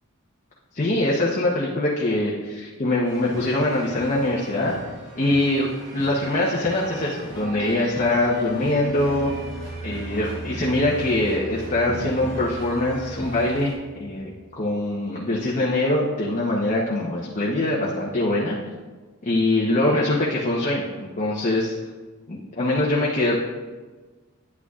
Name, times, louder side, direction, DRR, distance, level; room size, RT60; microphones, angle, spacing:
voice 1, 0.7-4.7 5.2-5.7 5.9-9.3 9.8-18.6 19.2-21.7 22.3-23.4, left 1 dB, 35° left, -4 dB, 0.9 m, -23 dB
sound 1, 3.0-13.7, right 1 dB, 55° right, 2.4 m, -40 dB
sound 2, 7.4-14.5, left 2 dB, 55° left, 2.0 m, -36 dB
9.5 x 8.7 x 2.4 m, 1.3 s
head